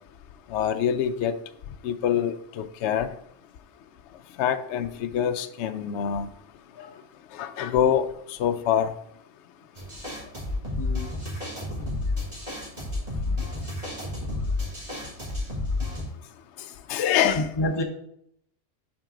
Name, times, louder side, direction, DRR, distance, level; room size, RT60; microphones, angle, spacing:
voice 1, 0.5-1.3 1.8-3.1 4.4-6.3 7.3-8.9 16.9-17.5, left 9 dB, 70° left, 10 dB, 0.8 m, -25 dB
sound 1, 9.8-16.0, left 2 dB, 30° right, 2.7 m, -31 dB
voice 2, 10.8-11.1 12.8-12.9 13.3-13.5 17.2-17.8, left 1 dB, 25° left, 3 dB, 0.8 m, -30 dB
8.9 x 4.5 x 3.8 m, 0.73 s
omnidirectional pair, 1.3 m